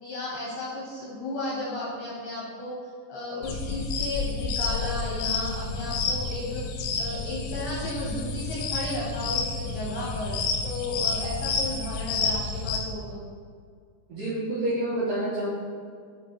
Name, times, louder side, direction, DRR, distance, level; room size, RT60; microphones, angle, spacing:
voice 1, 0.0-2.8 3.1-6.7 7.0-13.2, left 2 dB, 75° left, -6 dB, 2.4 m, -34 dB
sound 1, 3.4-12.8, left 4 dB, 90° left, 3.2 m, -30 dB
voice 2, 14.1-15.5, right 1 dB, 75° right, -11 dB, 2.0 m, -28 dB
8.0 x 4.4 x 2.9 m, 2.1 s
omnidirectional pair, 5.5 m